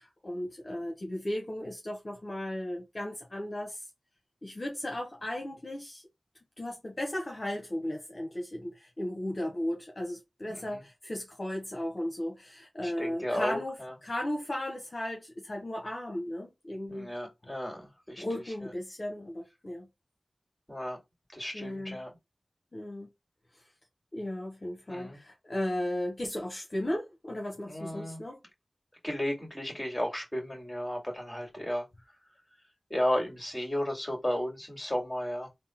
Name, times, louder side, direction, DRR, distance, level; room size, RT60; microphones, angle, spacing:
voice 1, 0.0-3.8 4.4-6.0 6.6-13.8 14.0-17.1 18.2-19.9 21.5-22.0 22.7-23.1 24.1-28.4, left 1 dB, 50° left, 0.9 m, -35 dB
voice 2, 10.5-10.8 12.8-13.9 16.9-18.2 20.7-21.0 21.3-22.1 24.9-25.2 27.6-28.2 29.0-31.9 32.9-35.5, equal, 15° left, 2.2 m, -33 dB
3.6 x 2.1 x 4.3 m
cardioid pair, 40°, 0 cm